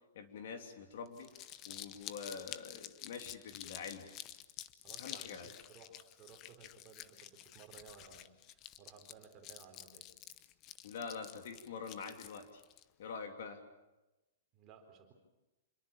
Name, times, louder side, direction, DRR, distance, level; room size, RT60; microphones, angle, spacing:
voice 1, 0.1-1.3 1.7-4.1 5.0-5.5 10.8-12.6 13.0-13.6, left 5 dB, 55° left, 5 dB, 3.1 m, -45 dB
Crumpling crinkling, 1.1-12.8, left 13 dB, 25° left, 0.8 m, -50 dB
voice 2, 4.8-10.1 14.5-15.1, right 5 dB, 20° right, 3 dB, 4.1 m, -58 dB
26.5 x 22.5 x 7.3 m, 1.0 s
hypercardioid pair, 170°, 0 cm